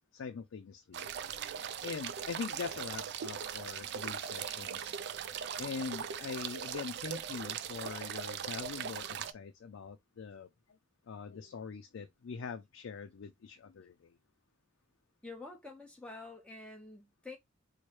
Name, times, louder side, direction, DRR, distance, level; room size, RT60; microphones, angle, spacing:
voice 1, 0.1-4.9 5.6-10.8 11.1-14.1, left 5 dB, 85° left, 0.4 m, -43 dB
sound 1, 0.9-9.3, right 8 dB, 60° right, 0.3 m, -40 dB
voice 2, 15.2-17.4, left 3 dB, 5° left, 1.0 m, -48 dB
4.5 x 2.1 x 3.0 m
head